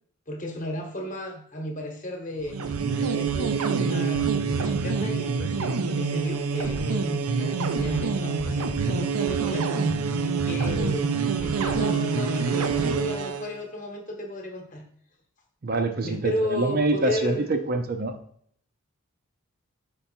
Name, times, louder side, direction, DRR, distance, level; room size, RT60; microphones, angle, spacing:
voice 1, 0.3-2.6 3.0-9.7 10.4-14.8 16.0-17.5, left 1 dB, 35° left, 3 dB, 1.1 m, -34 dB
sound 1, 2.4-13.5, right 5 dB, 85° right, 0.6 m, -26 dB
voice 2, 15.6-18.1, right 2 dB, 40° right, 6 dB, 0.5 m, -25 dB
5.3 x 4.5 x 4.3 m, 0.63 s
head